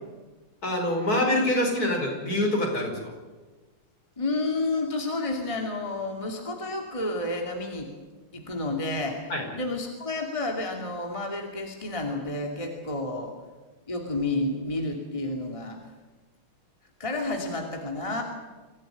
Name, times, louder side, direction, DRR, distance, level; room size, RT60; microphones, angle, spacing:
voice 1, 0.6-3.1 9.3-9.4, left 1 dB, 45° left, 1 dB, 5.7 m, -25 dB
voice 2, 4.2-7.9 8.3-13.3 13.9-15.8 17.0-18.2, left 2 dB, 15° left, 2 dB, 2.6 m, -30 dB
24.5 x 16.0 x 9.9 m, 1.3 s
omnidirectional pair, 2.2 m